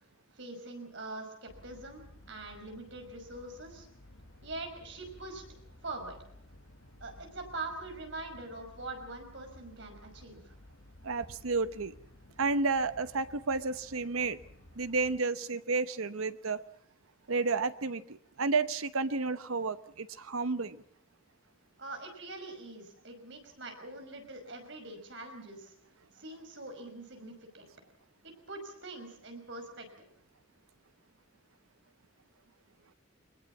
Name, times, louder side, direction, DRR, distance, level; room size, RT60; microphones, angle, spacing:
voice 1, 0.4-3.9 4.4-5.4 5.8-6.2 7.0-10.5 21.8-25.7 26.1-27.7 28.2-30.1, right 2 dB, 60° right, 4 dB, 5.7 m, -43 dB
sound 1, 1.5-15.2, left 1 dB, 65° left, 1.7 m, -55 dB
voice 2, 11.0-11.9 12.4-14.4 14.8-16.6 17.3-20.8, right 4 dB, 90° right, 12 dB, 1.0 m, -31 dB
23.5 x 21.5 x 7.3 m, 0.64 s
head